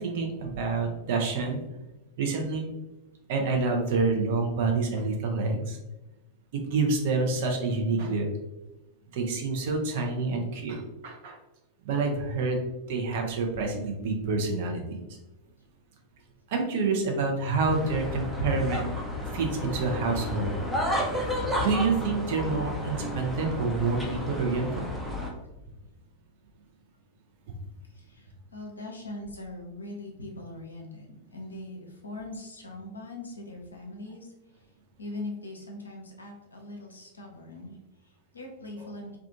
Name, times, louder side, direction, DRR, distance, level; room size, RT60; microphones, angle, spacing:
voice 1, 0.0-1.6 2.2-2.7 3.3-5.8 6.5-8.3 9.1-11.4 11.8-15.0 16.5-18.9 19.3-20.6 21.0-21.2 21.6-24.9, right 3 dB, 50° right, 2 dB, 0.5 m, -28 dB
sound 1, 17.6-25.3, left 1 dB, ahead, 0.6 m, -32 dB
voice 2, 27.9-34.3 35.0-39.2, left 2 dB, 80° left, 1 dB, 0.6 m, -41 dB
2.4 x 2.3 x 2.7 m, 0.99 s
figure-of-eight pair, 90°, 0 cm